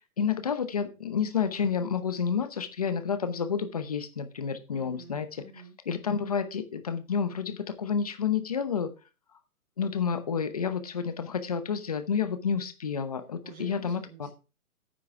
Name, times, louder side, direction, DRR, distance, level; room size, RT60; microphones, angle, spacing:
voice 1, 0.2-5.4 5.9-8.9 9.8-14.3, left 6 dB, 25° left, 0.8 m, -30 dB
voice 2, 4.7-5.8 13.4-14.3, right 3 dB, 70° right, 3.5 m, -48 dB
9.6 x 6.1 x 4.6 m
hypercardioid pair, 175°, 43 cm